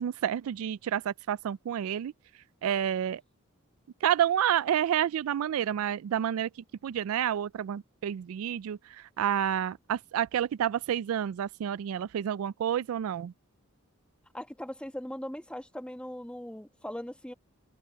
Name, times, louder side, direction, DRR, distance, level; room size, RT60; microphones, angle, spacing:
voice 1, 0.0-2.1 2.6-3.2 4.0-6.5 6.8-8.8 9.2-13.3, right 10 dB, 80° right, 0.3 m, -29 dB
voice 2, 14.3-17.3, left 1 dB, 5° left, 1.5 m, -39 dB
open air
head